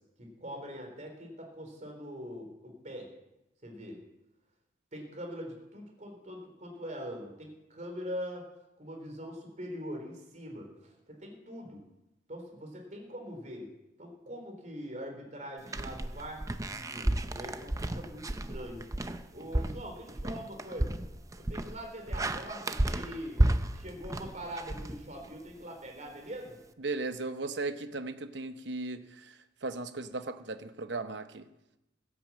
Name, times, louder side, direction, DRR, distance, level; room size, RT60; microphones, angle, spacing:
voice 1, 0.2-3.1 3.6-4.0 4.9-8.5 8.8-11.8 12.3-13.7 14.0-18.8 19.3-21.0 21.4-23.4 23.7-26.6, equal, 40° right, 3.5 m, -43 dB
sound 1, 15.7-25.5, right 1 dB, 15° right, 0.5 m, -32 dB
voice 2, 26.8-29.3 29.6-31.5, right 3 dB, 60° right, 0.9 m, -36 dB
15.5 x 8.7 x 7.4 m
head